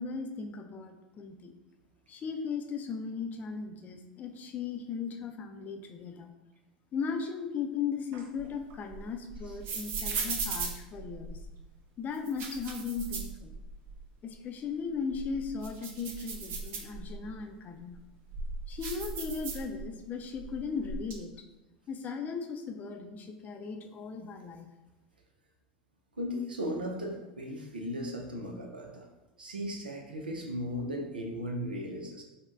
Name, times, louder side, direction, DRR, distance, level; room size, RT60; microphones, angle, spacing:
voice 1, 0.0-1.5 2.1-6.3 6.9-11.4 12.0-13.5 14.2-18.0 18.7-21.3 21.9-24.7, left 5 dB, 35° left, 5 dB, 0.4 m, -37 dB
sound 1, 8.1-11.6 12.1-14.0 14.3-14.4 14.9-17.3 17.9-20.1 20.3-21.1, right 4 dB, 50° right, 0.6 m, -38 dB
voice 2, 26.2-29.1 29.4-32.2, equal, 90° right, 1 dB, 0.5 m, -36 dB
5.0 x 2.1 x 2.4 m, 1.0 s
hypercardioid pair, 80°, 5 cm